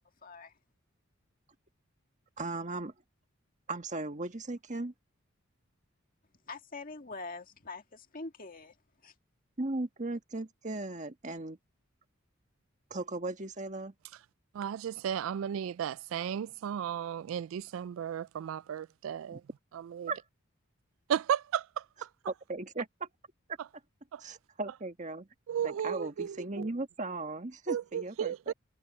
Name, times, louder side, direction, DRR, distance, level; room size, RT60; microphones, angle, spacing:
voice 1, 0.2-0.5 6.5-8.8 9.0-9.1, left 3 dB, 45° left, 2.1 m, -44 dB
voice 2, 2.4-2.9 3.7-4.9 9.6-11.6 12.9-13.9 19.3-19.4 20.1-20.2 22.5-23.1 24.2-25.3 25.6-28.5, right 2 dB, 35° right, 1.5 m, -37 dB
voice 3, 14.5-19.4 19.7-20.1 21.1-22.1 24.1-24.2 25.5-26.7 27.7-28.5, right 9 dB, 70° right, 0.3 m, -34 dB
head